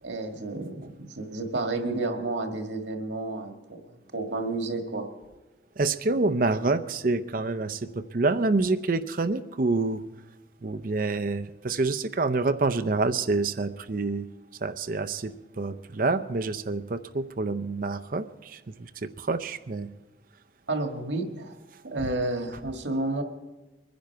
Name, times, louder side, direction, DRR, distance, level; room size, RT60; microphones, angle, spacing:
voice 1, 0.0-5.1 20.7-21.5 21.8-23.2, right 2 dB, 80° right, 4 dB, 1.7 m, -31 dB
voice 2, 5.8-10.0 10.6-14.3 14.6-18.9 19.2-19.9, right 3 dB, 45° right, 10 dB, 0.6 m, -27 dB
23.5 x 10.5 x 4.6 m, 1.1 s
head